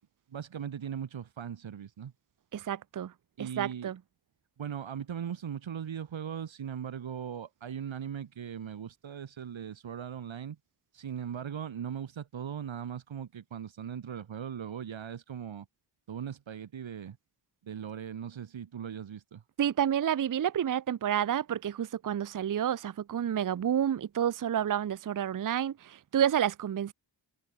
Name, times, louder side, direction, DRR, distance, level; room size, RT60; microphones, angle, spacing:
voice 1, 0.3-2.1 3.4-3.9 4.6-10.6 10.9-15.7 16.1-17.2 17.6-19.4, right 8 dB, 80° right, 3.0 m, -39 dB
voice 2, 2.5-3.1 3.4-4.0 19.6-26.9, right 9 dB, 45° right, 0.7 m, -29 dB
wide cardioid pair, 90°, 46 cm